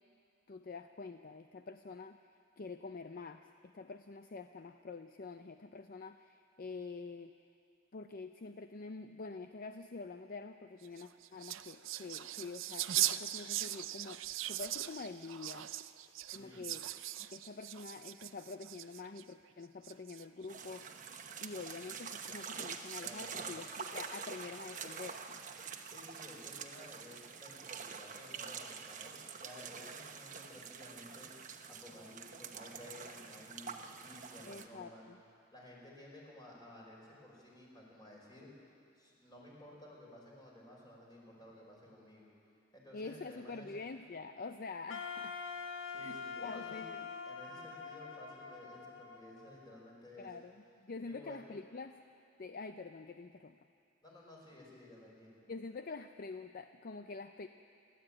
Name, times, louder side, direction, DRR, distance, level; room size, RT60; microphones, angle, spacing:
voice 1, 0.5-2.2 2.6-7.4 7.9-15.7 16.3-16.9 17.2-21.0 21.4-25.4 34.5-35.2 42.9-45.4 46.0-47.1 50.2-50.5 50.8-52.0 52.4-53.7 55.5-57.5, left 4 dB, 45° left, 8 dB, 0.5 m, -46 dB
sound 1, 10.8-19.2 19.8-20.4, right 14 dB, 85° right, 0.6 m, -39 dB
voice 2, 16.3-16.7 23.0-23.6 25.8-31.3 31.7-35.0 35.5-38.5 39.0-42.3 42.7-43.7 45.8-46.8 47.3-50.3 51.0-51.5 54.0-55.4, left 1 dB, 20° left, -3 dB, 5.3 m, -54 dB
sound 2, 20.5-34.7, right 6 dB, 40° right, 1.1 m, -46 dB
Wind instrument woodwind instrument, 44.9-49.9, left 5 dB, 70° left, 1.3 m, -45 dB
28.5 x 12.0 x 8.9 m, 2.5 s
head